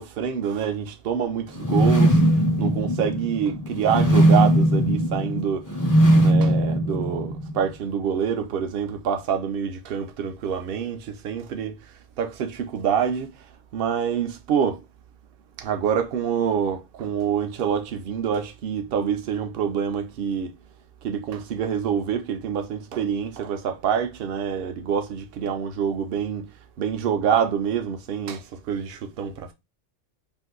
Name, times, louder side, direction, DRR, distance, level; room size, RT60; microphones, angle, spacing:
voice 1, 0.0-11.8 12.2-13.3 13.7-14.8 15.6-20.5 21.0-29.5, right 7 dB, 60° right, 0.7 m, -26 dB
sound 1, 1.6-7.6, right 1 dB, 25° left, 0.4 m, -19 dB
2.7 x 2.5 x 3.6 m
omnidirectional pair, 1.3 m